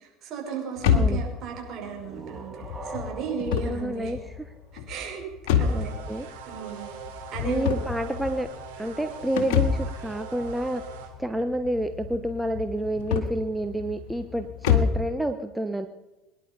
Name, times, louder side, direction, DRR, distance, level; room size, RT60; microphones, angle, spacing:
voice 1, 0.0-4.1 4.7-5.2 5.6-5.9 6.5-7.0 7.3-7.8, right 7 dB, 50° right, 1 dB, 6.0 m, -35 dB
sound 1, 0.8-15.1, left 7 dB, 65° left, 2.1 m, -29 dB
voice 2, 0.9-1.2 3.7-4.2 5.7-6.3 7.4-8.5 8.8-10.8 11.2-15.9, right 1 dB, 5° right, 7 dB, 1.1 m, -29 dB
sound 2, 1.8-5.3, right 2 dB, 20° right, 3.0 m, -43 dB
sound 3, 5.6-11.1, right 7 dB, 75° right, 4.0 m, -42 dB
23.5 x 11.0 x 5.5 m, 1.1 s
hypercardioid pair, 70°, 0 cm